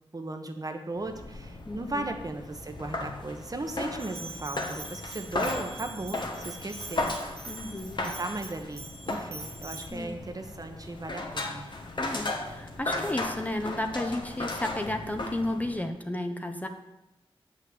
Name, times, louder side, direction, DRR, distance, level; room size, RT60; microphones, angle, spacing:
voice 1, 0.1-7.1 8.0-11.6, right 2 dB, 40° right, 5 dB, 1.1 m, -37 dB
sound 1, 1.0-15.9, left 2 dB, 55° left, 1.5 m, -36 dB
voice 2, 1.6-2.1 7.5-8.0 9.9-10.2 12.0-16.7, left 1 dB, 15° left, 6 dB, 1.0 m, -33 dB
Bell, 4.0-9.9, right 3 dB, 85° right, 1.5 m, -44 dB
7.9 x 6.0 x 8.0 m, 0.93 s
wide cardioid pair, 75°, 10 cm